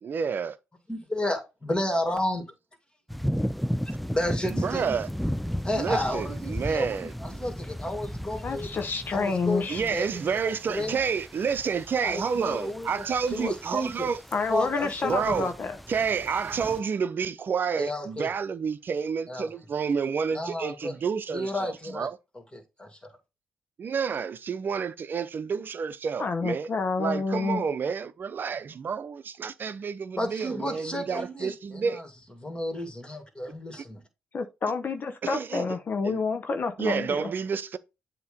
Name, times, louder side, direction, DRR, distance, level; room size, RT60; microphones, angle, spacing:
voice 1, 0.0-0.6 4.5-5.1 5.7-7.1 9.7-14.2 15.0-15.5 15.9-22.2 23.8-26.7 27.0-32.0 35.2-35.6 36.0-36.2 36.8-37.8, right 6 dB, 50° right, 0.7 m, -29 dB
voice 2, 0.9-2.5 4.1-4.9 5.6-8.7 9.1-11.0 12.0-13.0 13.3-14.1 14.5-15.1 17.8-18.3 19.3-19.5 20.3-20.9 21.3-22.1 22.5-23.0 30.2-32.1 32.4-34.0, left 1 dB, 20° left, 2.6 m, -32 dB
sound 1, 3.1-16.8, equal, ahead, 0.4 m, -35 dB
voice 3, 8.4-9.8 14.3-15.8 26.2-27.6 34.3-37.3, left 4 dB, 50° left, 0.9 m, -29 dB
8.0 x 3.0 x 5.1 m
supercardioid pair, 55°, 4 cm